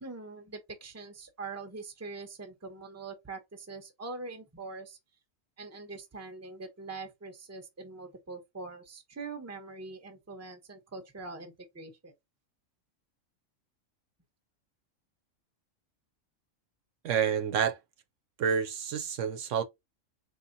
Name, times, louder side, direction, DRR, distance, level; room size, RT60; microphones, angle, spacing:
voice 1, 0.0-5.0 5.6-12.1, right 3 dB, 15° right, 0.7 m, -43 dB
voice 2, 17.0-17.8 18.4-19.6, right 7 dB, 70° right, 0.9 m, -28 dB
4.2 x 3.2 x 2.7 m
omnidirectional pair, 1.4 m